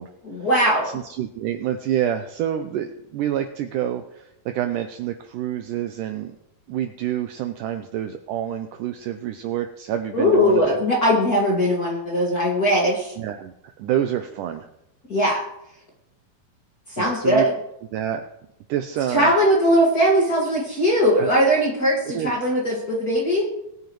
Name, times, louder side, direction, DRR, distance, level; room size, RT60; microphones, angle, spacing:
voice 1, 0.2-0.9 10.1-13.1 15.1-15.4 17.0-17.5 19.1-23.5, equal, 35° left, -3 dB, 1.7 m, -20 dB
voice 2, 0.8-6.3 6.7-10.8 13.2-13.5 13.8-14.7 17.0-17.5 17.9-18.2 18.7-19.3 21.2-21.3 22.1-22.3, right 11 dB, 85° right, 7 dB, 1.9 m, -27 dB
21.5 x 9.0 x 3.1 m, 0.83 s
omnidirectional pair, 4.3 m